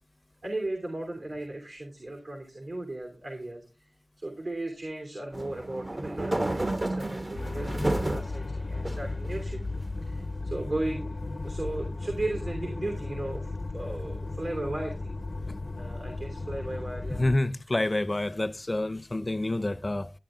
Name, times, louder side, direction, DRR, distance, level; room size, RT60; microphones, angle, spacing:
voice 1, 0.4-3.6 4.2-9.6 10.0-11.2 11.4-15.2 15.8-17.2, right 2 dB, 80° right, 2.9 m, -36 dB
sound 1, 5.3-8.3 8.8-9.7, right 1 dB, 40° right, 0.8 m, -31 dB
sound 2, 7.3-17.4, left 2 dB, 85° left, 0.9 m, -35 dB
voice 2, 17.2-20.1, left 2 dB, 40° left, 0.6 m, -28 dB
12.0 x 9.9 x 3.7 m
wide cardioid pair, 60°, 0 cm